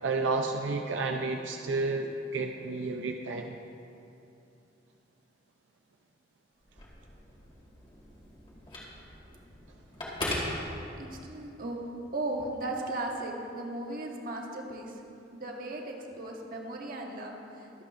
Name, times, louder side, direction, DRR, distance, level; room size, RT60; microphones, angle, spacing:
voice 1, 0.0-3.6, right 3 dB, 85° right, 3 dB, 0.5 m, -31 dB
Telephone, 6.6-11.4, left 1 dB, 30° left, 2.3 m, -39 dB
voice 2, 11.0-11.8 12.1-15.0 15.3-17.8, right 2 dB, 50° right, 0 dB, 1.3 m, -36 dB
23.5 x 8.3 x 2.6 m, 2.7 s
head